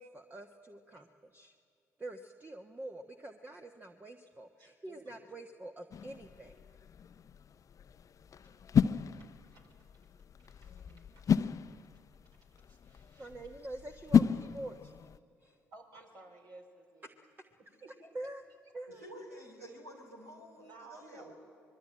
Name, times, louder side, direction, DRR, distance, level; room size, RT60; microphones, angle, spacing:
voice 1, 0.0-1.5 2.0-6.6 13.2-14.9 15.4-15.6 17.0-17.1 18.1-18.4 18.7-19.1, right 1 dB, 25° right, 5 dB, 1.3 m, -46 dB
voice 2, 4.6-5.2 8.4-8.9 9.1-9.7 10.4-10.8 11.1-11.4 12.3-13.3 15.7-17.2 17.8-18.1 20.6-21.3, right 2 dB, 60° right, 1 dB, 5.0 m, -56 dB
sound 1, 5.9-15.2, left 7 dB, 45° left, 0.7 m, -33 dB
voice 3, 18.9-21.3, equal, 90° right, 0 dB, 3.7 m, -50 dB
24.5 x 22.0 x 9.2 m, 2.5 s
figure-of-eight pair, 45°, 8 cm